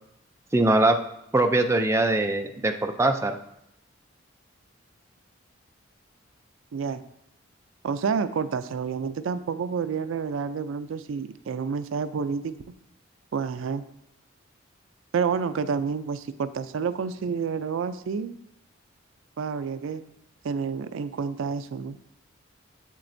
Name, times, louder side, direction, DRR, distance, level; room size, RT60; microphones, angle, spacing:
voice 1, 0.5-1.0 1.3-3.3, right 2 dB, 15° right, 5 dB, 0.4 m, -22 dB
voice 2, 6.7-7.0 7.8-12.6 13.3-13.9 15.1-18.4 19.4-20.0 20.4-22.0, right 5 dB, 80° right, 13 dB, 0.4 m, -29 dB
7.9 x 7.3 x 2.6 m, 0.79 s
head